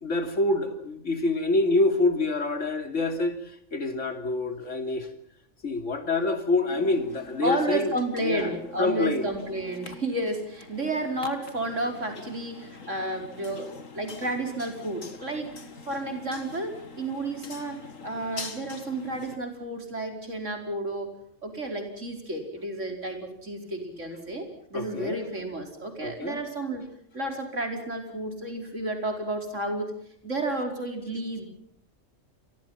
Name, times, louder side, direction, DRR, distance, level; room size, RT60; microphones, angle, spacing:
voice 1, 0.0-5.1 5.6-7.9 8.2-9.3 24.7-25.3 26.0-26.4, left 2 dB, 70° left, 7 dB, 3.2 m, -26 dB
sound 1, 6.7-19.4, left 4 dB, 90° left, 2.4 m, -45 dB
voice 2, 7.4-15.5 15.9-21.1 21.4-26.9 27.1-29.9 30.2-31.5, right 1 dB, 70° right, 4 dB, 5.4 m, -31 dB
30.0 x 24.0 x 5.8 m, 0.70 s
omnidirectional pair, 1.3 m